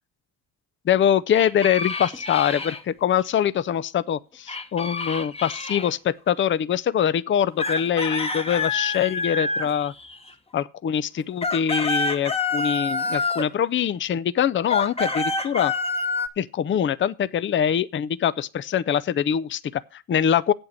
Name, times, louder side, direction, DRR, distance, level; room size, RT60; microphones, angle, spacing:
voice 1, 0.9-2.7 3.0-9.9 10.5-15.7 16.4-20.5, left 9 dB, 30° left, 0.5 m, -23 dB
sound 1, 1.3-2.8 4.5-5.9 7.6-10.3 11.2-13.5 14.6-16.3, left 3 dB, 15° left, 1.1 m, -27 dB
8.0 x 7.9 x 7.3 m
cardioid pair, 105°, 39 cm